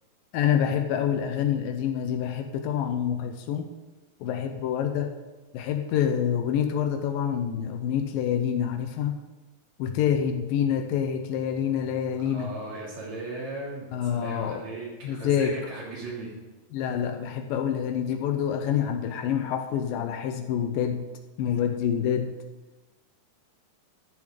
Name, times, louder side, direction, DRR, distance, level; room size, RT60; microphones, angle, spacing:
voice 1, 0.3-3.7 4.2-5.1 5.5-9.2 9.8-12.6 13.9-14.6 15.0-15.6 16.7-21.1 21.4-22.3, left 9 dB, 80° left, 5 dB, 2.4 m, -27 dB
voice 2, 12.2-16.3, right 2 dB, 50° right, -4 dB, 3.8 m, -37 dB
14.0 x 6.9 x 5.0 m, 1.1 s
omnidirectional pair, 4.2 m